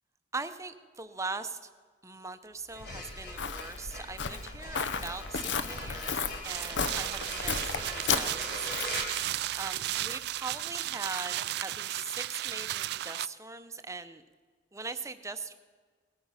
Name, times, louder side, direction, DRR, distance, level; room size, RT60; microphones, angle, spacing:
voice 1, 0.3-1.6 2.0-14.2 14.7-15.5, right 4 dB, 15° right, 11 dB, 0.7 m, -41 dB
sound 1, 2.6-10.1, left 1 dB, 55° left, 3.6 m, -43 dB
Walk footsteps, 2.8-9.1, left 5 dB, 75° left, 0.8 m, -34 dB
sound 2, 6.4-13.3, right 14 dB, 60° right, 0.3 m, -34 dB
19.0 x 9.2 x 5.6 m, 1.5 s
head